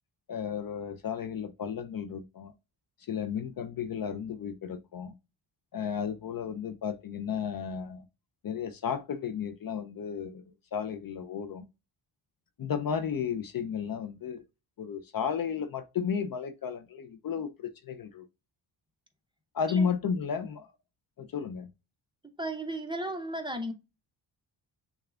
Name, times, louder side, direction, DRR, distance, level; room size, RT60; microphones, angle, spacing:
voice 1, 0.3-2.5 3.1-5.2 5.7-8.1 8.4-11.7 12.6-14.4 14.8-18.3 19.5-20.7 21.2-21.7, left 7 dB, 45° left, 0.6 m, -33 dB
voice 2, 22.4-23.7, right 1 dB, 10° right, 0.7 m, -34 dB
6.4 x 2.4 x 2.3 m
cardioid pair, 80°, 47 cm